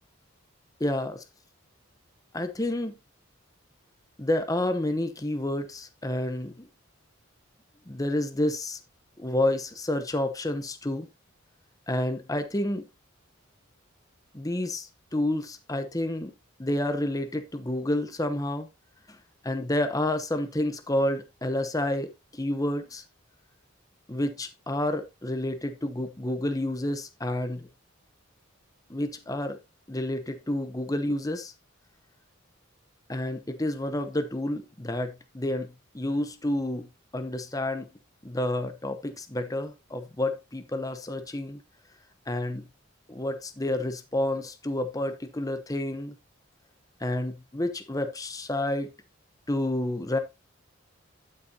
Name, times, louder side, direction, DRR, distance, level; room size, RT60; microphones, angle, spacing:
voice 1, 0.8-1.2 2.3-2.9 4.2-6.7 7.9-8.8 9.2-11.1 11.9-12.8 14.3-16.3 16.6-18.7 19.4-23.0 24.1-27.7 28.9-29.6 29.9-31.5 33.1-36.9 37.1-37.9 38.2-41.6 42.3-42.7 43.1-46.1 47.0-48.9 49.5-50.2, left 1 dB, 15° left, 0.9 m, -29 dB
11.5 x 6.7 x 2.8 m
head